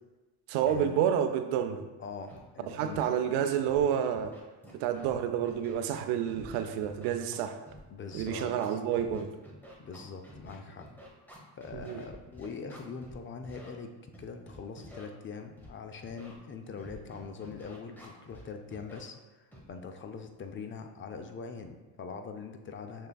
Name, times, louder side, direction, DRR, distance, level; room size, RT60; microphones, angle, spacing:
voice 1, 0.5-1.9 2.7-4.4 4.7-7.6 8.1-9.3 11.7-12.0, right 9 dB, 90° right, 8 dB, 0.6 m, -29 dB
voice 2, 2.0-3.0 7.9-8.5 9.8-10.9 11.6-23.1, left 5 dB, 30° left, 6 dB, 0.4 m, -43 dB
Scratching (performance technique), 2.3-2.4 2.8-3.1 3.4-3.9 4.2-5.2 5.4-7.8 8.1-13.1 13.4-13.7 14.1-15.1 15.6-15.7 16.0-16.4 16.8-18.4 18.7-19.0 19.5-19.7, equal, 5° left, 0.9 m, -50 dB
6.5 x 3.3 x 2.2 m, 1.1 s
cardioid pair, 100°, 47 cm